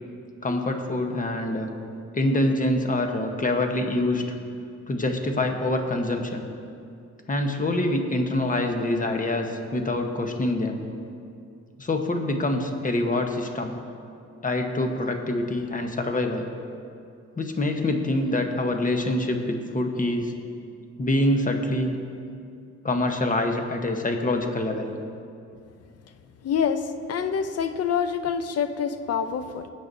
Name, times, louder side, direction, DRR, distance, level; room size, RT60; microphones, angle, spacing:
voice 1, 0.4-1.7 2.1-4.2 4.9-6.5 7.3-10.8 11.8-13.7 14.4-16.5 17.4-20.3 21.0-21.9 22.8-24.9, left 1 dB, 25° left, 4 dB, 1.2 m, -25 dB
voice 2, 26.4-29.7, left 7 dB, 55° left, 10 dB, 0.7 m, -26 dB
19.5 x 8.4 x 2.7 m, 2.5 s
cardioid pair, 90°, 30 cm